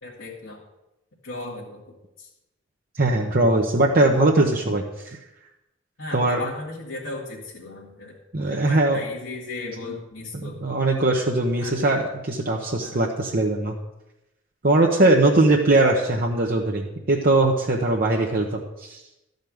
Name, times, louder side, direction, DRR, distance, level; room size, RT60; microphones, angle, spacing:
voice 1, 0.0-0.6 1.2-2.3 6.0-8.2 8.5-10.8 11.6-11.9 12.8-13.0, left 2 dB, 85° left, -7 dB, 2.4 m, -36 dB
voice 2, 3.0-4.8 6.1-6.4 8.3-9.0 10.6-13.7 14.6-19.0, right 2 dB, 50° right, -1 dB, 1.0 m, -20 dB
13.0 x 5.3 x 7.8 m, 0.94 s
head